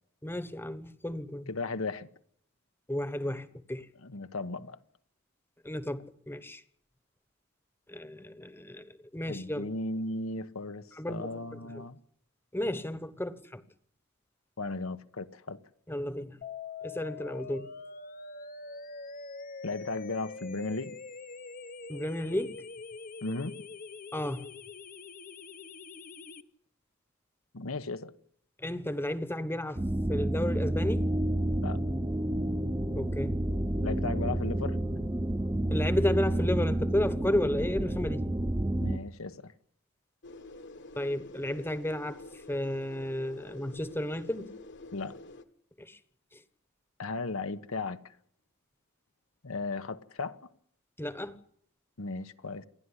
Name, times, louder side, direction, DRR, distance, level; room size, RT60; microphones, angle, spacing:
voice 1, 0.2-1.5 2.9-3.9 5.6-6.6 7.9-9.7 11.0-11.3 12.5-13.6 15.9-16.4 16.8-17.7 21.9-22.6 24.1-24.5 28.6-31.1 32.9-33.4 35.7-38.3 41.0-42.2 42.5-44.5 45.8-46.0 51.0-51.4, left 1 dB, 10° left, 1.2 m, -33 dB
voice 2, 1.5-2.1 4.0-4.8 9.3-12.0 14.6-15.6 19.6-21.0 23.2-23.6 27.5-28.1 31.6-31.8 33.8-34.8 38.8-39.5 44.9-45.2 47.0-48.2 49.4-50.4 52.0-52.6, left 3 dB, 80° left, 1.1 m, -36 dB
sound 1, 16.4-26.4, left 4 dB, 45° left, 0.9 m, -44 dB
sound 2, 29.8-39.0, right 1 dB, 15° right, 1.0 m, -29 dB
sound 3, 40.2-45.4, left 2 dB, 60° left, 1.5 m, -48 dB
28.0 x 11.0 x 10.0 m
head